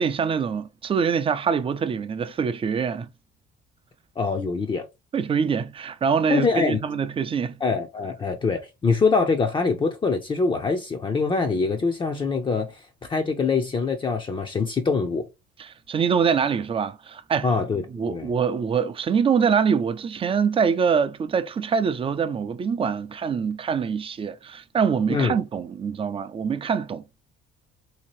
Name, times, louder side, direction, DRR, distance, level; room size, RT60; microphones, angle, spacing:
voice 1, 0.0-3.1 5.1-7.6 15.6-17.5 17.9-27.0, right 6 dB, 30° right, 0.4 m, -24 dB
voice 2, 4.2-4.8 6.3-6.8 7.6-15.2 17.4-18.3 25.1-25.3, left 4 dB, 25° left, 0.6 m, -24 dB
3.5 x 2.8 x 3.0 m
cardioid pair, 115°, 19 cm